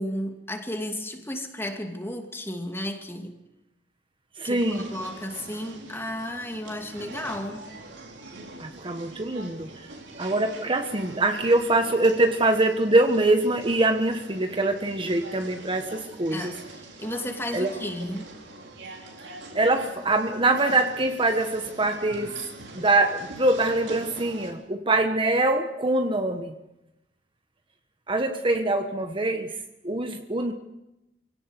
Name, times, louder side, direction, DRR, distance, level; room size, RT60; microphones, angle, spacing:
voice 1, 0.0-3.4 4.4-7.6 16.3-18.3, left 1 dB, 15° left, 4 dB, 2.5 m, -33 dB
voice 2, 4.4-4.9 8.6-9.9 10.2-16.5 17.5-17.7 19.5-22.4 22.7-26.5 28.1-30.5, right 2 dB, 30° right, 6 dB, 1.3 m, -24 dB
sound 1, 4.5-24.5, right 2 dB, 80° right, 4.8 m, -43 dB
25.0 x 17.5 x 8.3 m, 0.92 s
head